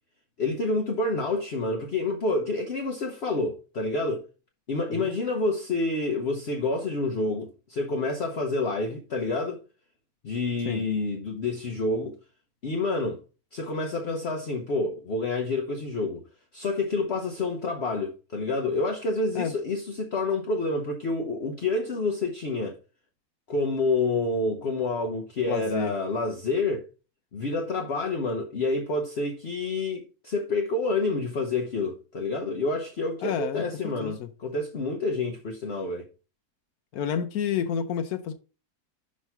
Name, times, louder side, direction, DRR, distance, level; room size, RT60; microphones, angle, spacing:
voice 1, 0.4-4.3 4.7-9.6 10.2-12.2 12.6-13.2 13.5-16.2 16.5-22.8 23.5-26.9 27.3-36.0, left 3 dB, 50° left, 1.0 m, -28 dB
voice 2, 25.4-25.9 33.2-33.7 34.0-34.3 36.9-38.3, left 8 dB, 80° left, 1.1 m, -29 dB
6.2 x 3.2 x 5.6 m
omnidirectional pair, 1.6 m